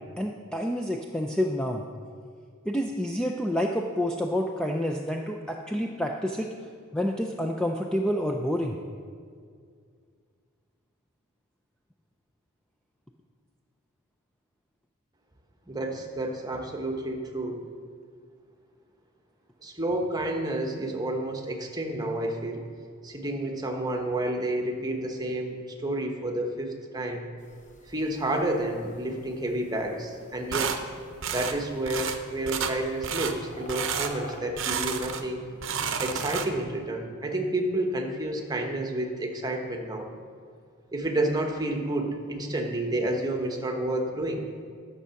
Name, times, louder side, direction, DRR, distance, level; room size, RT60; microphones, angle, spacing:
voice 1, 0.2-1.8 2.6-6.5 6.9-8.8, equal, 5° left, 2 dB, 0.4 m, -28 dB
voice 2, 15.7-17.6 19.6-22.6 23.0-27.3 27.9-30.7 31.3-35.4 36.0-40.1 40.9-44.5, right 1 dB, 20° right, 2 dB, 1.0 m, -30 dB
sound 1, 27.4-34.4, left 1 dB, 35° left, 1.0 m, -49 dB
sound 2, 30.5-30.8 31.2-31.6 31.9-32.2 32.5-32.8 33.0-33.4 33.7-34.1 34.6-35.3 35.5-36.7, right 7 dB, 60° right, 0.7 m, -30 dB
11.0 x 6.9 x 5.7 m, 2.1 s
head